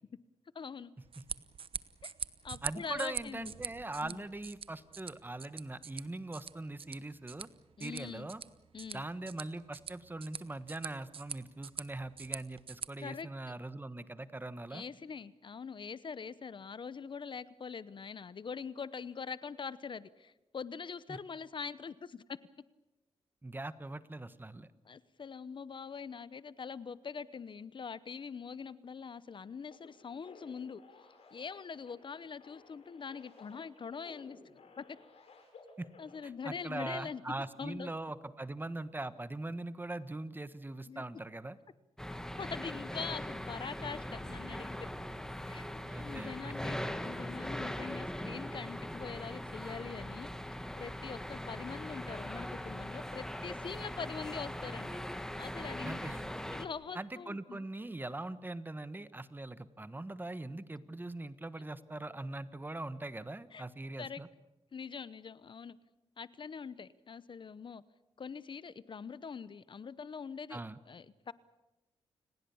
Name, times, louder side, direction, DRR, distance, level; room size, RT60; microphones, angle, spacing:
voice 1, 0.5-0.9 2.0-2.1 2.4-3.5 4.0-4.2 7.8-8.3 8.7-9.0 13.0-13.3 14.7-22.4 24.9-30.8 31.3-34.4 34.8-35.0 36.0-37.2 37.6-37.9 40.9-41.0 42.4-44.8 45.5-50.3 50.8-55.0 55.4-56.0 56.5-57.6 63.5-63.6 64.0-64.2 64.7-65.8 66.2-67.8 68.2-70.6 70.9-71.3, left 6 dB, 50° left, 17 dB, 0.8 m, -43 dB
sound 1, 1.0-12.9, right 7 dB, 55° right, 1.0 m, -45 dB
voice 2, 2.6-7.5 7.8-8.4 8.9-14.8 21.1-21.2 23.4-24.7 35.8-35.9 36.2-41.6 45.9-46.5 55.8-56.2 56.9-64.3 70.5-70.8, right 2 dB, 20° right, 14 dB, 1.3 m, -41 dB
sound 2, 29.7-36.2, left 4 dB, 70° left, 6.8 m, -58 dB
sound 3, 42.0-56.7, left 1 dB, 5° left, 1.7 m, -41 dB
29.5 x 19.0 x 7.1 m, 1.0 s
cardioid pair, 75°, 11 cm